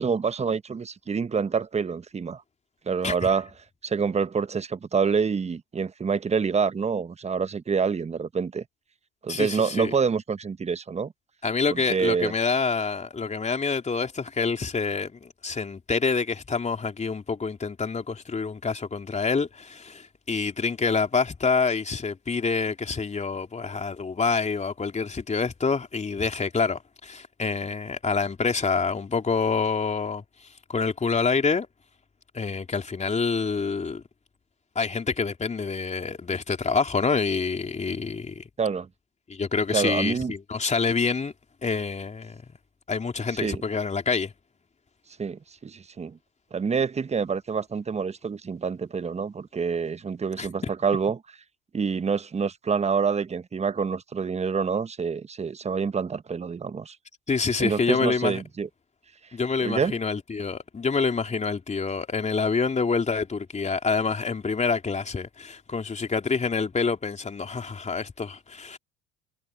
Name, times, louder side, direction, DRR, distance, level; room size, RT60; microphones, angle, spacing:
voice 1, 0.0-2.4 2.9-3.5 3.8-8.6 9.2-11.1 11.7-12.3 38.6-38.9 39.7-40.3 43.4-43.6 45.2-46.2 46.5-51.2 51.7-57.0 57.6-58.7 59.6-60.0, right 5 dB, 20° right, 1.3 m, -27 dB
voice 2, 9.3-9.9 11.4-30.2 30.7-31.7 32.3-34.0 34.7-38.4 39.3-41.3 41.6-42.4 42.9-44.3 50.4-50.5 57.3-58.4 59.3-68.8, left 4 dB, 20° left, 3.3 m, -27 dB
hypercardioid pair, 70°, 31 cm